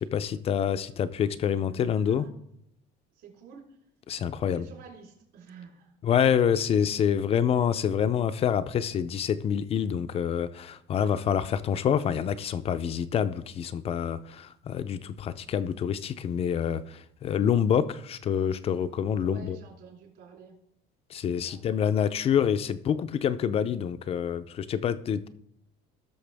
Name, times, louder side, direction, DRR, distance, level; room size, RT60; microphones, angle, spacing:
voice 1, 0.1-2.3 4.1-4.6 6.0-19.6 21.1-25.3, left 8 dB, 30° left, 0.4 m, -27 dB
voice 2, 1.7-2.4 3.1-3.8 4.5-5.9 11.0-11.2 19.2-20.6 21.4-22.2, right 5 dB, 60° right, 3.7 m, -50 dB
18.0 x 6.5 x 3.4 m
cardioid pair, 165°, 21 cm